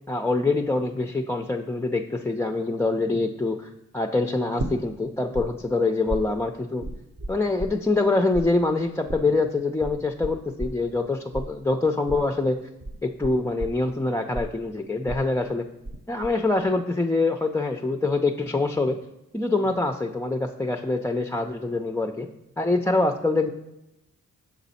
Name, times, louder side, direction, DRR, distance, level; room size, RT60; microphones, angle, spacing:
voice 1, 0.1-6.8 7.3-12.6 13.0-15.6 16.1-19.0 19.3-22.3 22.6-23.5, left 3 dB, 10° left, 4 dB, 0.4 m, -25 dB
sound 1, 4.6-5.5 5.7-8.1 8.3-16.0 16.2-16.8, right 1 dB, 35° right, 0.8 m, -34 dB
6.2 x 4.0 x 4.1 m, 0.92 s
cardioid pair, 50°, 35 cm